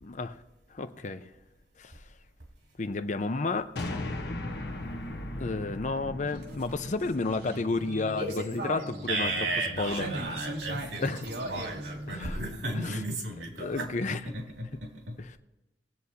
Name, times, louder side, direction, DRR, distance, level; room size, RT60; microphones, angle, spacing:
voice 1, 0.0-0.4 0.7-1.3 1.8-1.9 2.8-3.7 5.4-9.5 9.8-10.1 11.0-11.3 12.1-12.4 12.7-13.0 13.6-14.2 15.2-15.4, left 3 dB, 45° left, 10 dB, 0.6 m, -31 dB
sound 1, 3.8-8.2, left 1 dB, 65° left, 1.1 m, -37 dB
sound 2, 6.2-13.0, right 1 dB, 70° right, 1.9 m, -38 dB
voice 2, 9.1-11.0 11.5-15.2, right 2 dB, 90° right, 1 dB, 2.4 m, -34 dB
21.5 x 7.9 x 2.8 m, 0.99 s
head